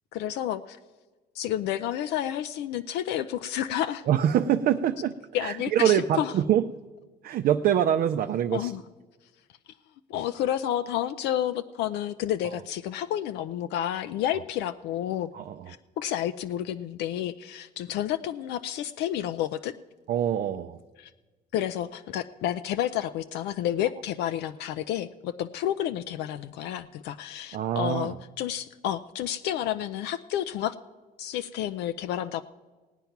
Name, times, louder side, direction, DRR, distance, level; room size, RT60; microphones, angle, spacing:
voice 1, 0.1-0.8 1.3-4.0 5.3-6.3 8.5-8.8 10.1-15.3 15.7-19.7 21.0-21.1 21.5-30.7 31.2-32.4, left 11 dB, 80° left, 10 dB, 0.4 m, -30 dB
voice 2, 4.1-5.1 5.4-6.7 7.2-8.7 15.3-15.7 20.1-20.8 27.5-28.2, right 10 dB, 60° right, 6 dB, 0.5 m, -24 dB
17.0 x 9.2 x 5.8 m, 1.3 s
cardioid pair, 110°, 17 cm